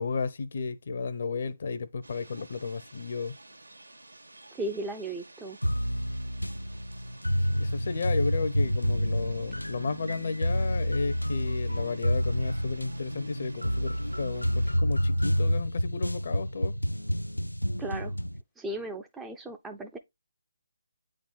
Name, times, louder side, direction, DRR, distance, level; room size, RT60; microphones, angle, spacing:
voice 1, 0.0-3.4 7.4-16.8, left 4 dB, 45° left, 0.7 m, -33 dB
sound 1, 2.0-14.8, right 2 dB, 70° right, 1.6 m, -52 dB
voice 2, 4.5-5.6 17.8-18.1 18.6-20.0, right 1 dB, 5° right, 0.5 m, -36 dB
sound 2, 5.6-18.4, equal, 85° left, 0.4 m, -29 dB
8.5 x 3.9 x 3.6 m
figure-of-eight pair, 145°, 0 cm